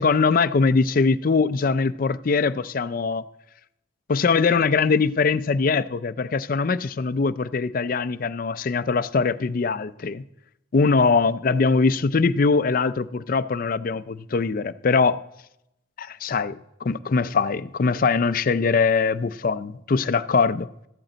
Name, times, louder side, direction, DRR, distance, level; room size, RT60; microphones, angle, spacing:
voice 1, 0.0-3.3 4.1-10.2 10.7-15.2 16.0-20.7, left 4 dB, 50° left, 0.4 m, -22 dB
14.5 x 11.5 x 4.0 m
head